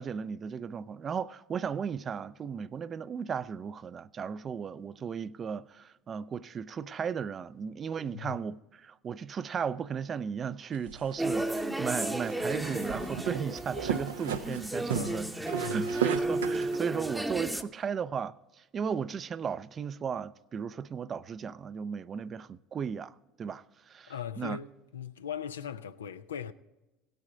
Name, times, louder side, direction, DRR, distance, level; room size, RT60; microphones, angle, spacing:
voice 1, 0.0-15.3 15.7-18.4 18.7-23.1 23.4-24.6, right 7 dB, 35° right, 0.5 m, -35 dB
sound 1, 10.7-16.8, right 7 dB, 85° right, 0.6 m, -36 dB
sound 2, 11.2-17.6, right 1 dB, 5° right, 0.8 m, -33 dB
voice 2, 14.9-15.3 15.6-16.0 24.1-26.5, left 8 dB, 85° left, 0.5 m, -39 dB
17.0 x 9.2 x 3.8 m
hypercardioid pair, 70°, 0 cm